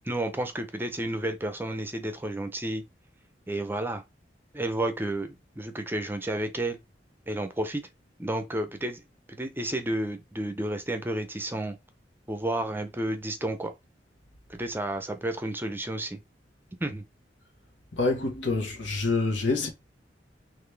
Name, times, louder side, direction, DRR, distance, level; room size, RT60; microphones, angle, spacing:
voice 1, 0.0-2.8 3.5-4.0 4.5-6.8 7.3-7.8 8.2-9.0 9.3-11.8 12.3-13.7 14.5-16.2 16.8-17.0, right 1 dB, 10° right, 0.6 m, -31 dB
voice 2, 17.9-19.7, left 3 dB, 90° left, 1.6 m, -26 dB
4.0 x 3.1 x 3.3 m
head